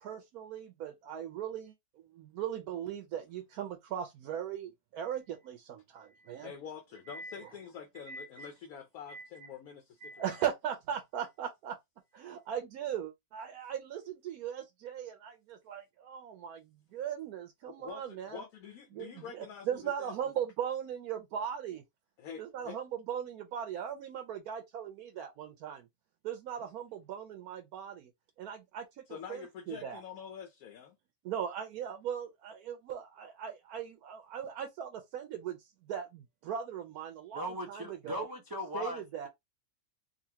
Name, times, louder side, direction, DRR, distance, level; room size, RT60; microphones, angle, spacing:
voice 1, 0.0-6.5 7.1-7.4 8.1-8.5 9.1-9.3 10.0-11.8 12.1-18.4 18.9-21.8 22.4-25.9 26.2-28.1 28.4-29.0 29.3-30.0 31.2-38.3 38.7-39.3, right 9 dB, 85° right, 1.1 m, -39 dB
voice 2, 6.4-10.4 17.7-20.3 22.2-22.8 29.1-31.0, left 7 dB, 75° left, 1.1 m, -46 dB
voice 3, 37.3-39.0, left 1 dB, 25° right, 0.5 m, -38 dB
3.9 x 2.4 x 2.8 m
omnidirectional pair, 1.6 m